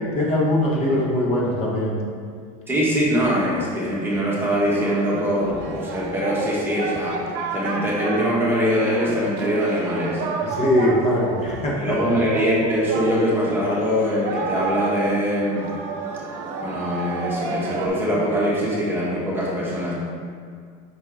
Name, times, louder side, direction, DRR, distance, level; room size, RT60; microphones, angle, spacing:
voice 1, 0.1-2.0 10.4-12.0, left 1 dB, 35° left, -3 dB, 1.1 m, -21 dB
voice 2, 2.7-7.2 7.5-10.2 11.8-15.7 16.6-20.0, equal, 10° right, -6 dB, 1.2 m, -23 dB
Singing, 4.8-17.9, right 3 dB, 65° right, 0.7 m, -31 dB
5.8 x 4.5 x 3.6 m, 2.1 s
supercardioid pair, 140°, 19 cm